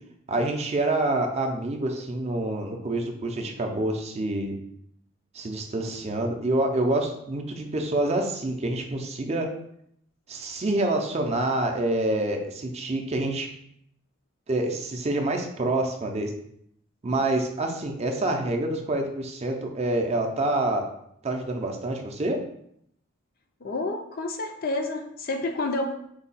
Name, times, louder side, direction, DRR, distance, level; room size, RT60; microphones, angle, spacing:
voice 1, 0.3-4.6 5.3-9.5 10.3-13.5 14.5-16.3 17.0-20.9 21.2-22.4, right 2 dB, 30° right, 3 dB, 0.5 m, -27 dB
voice 2, 23.6-26.0, left 2 dB, 45° left, 4 dB, 0.5 m, -29 dB
4.6 x 2.2 x 4.0 m, 0.72 s
head